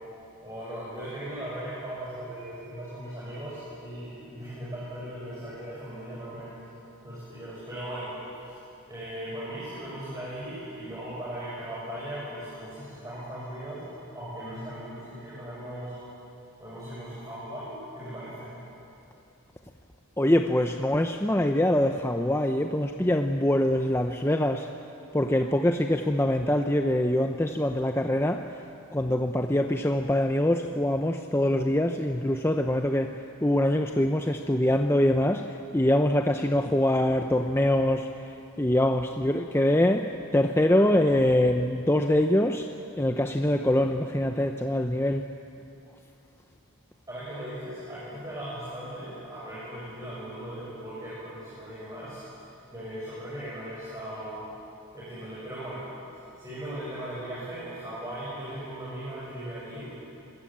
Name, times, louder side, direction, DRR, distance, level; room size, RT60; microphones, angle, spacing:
voice 1, 0.4-6.5 7.0-8.2 8.5-8.6 8.9-13.8 14.1-16.0 16.6-18.7 47.1-52.4 52.7-54.5 54.9-55.9 56.4-60.0, right 1 dB, 15° right, -10 dB, 7.0 m, -38 dB
voice 2, 20.2-24.7 25.1-28.4 28.9-33.2 33.4-35.5 35.7-38.1 38.6-42.7 43.0-45.3, left 1 dB, 10° left, 5 dB, 0.7 m, -24 dB
26.0 x 21.5 x 8.7 m, 2.7 s
head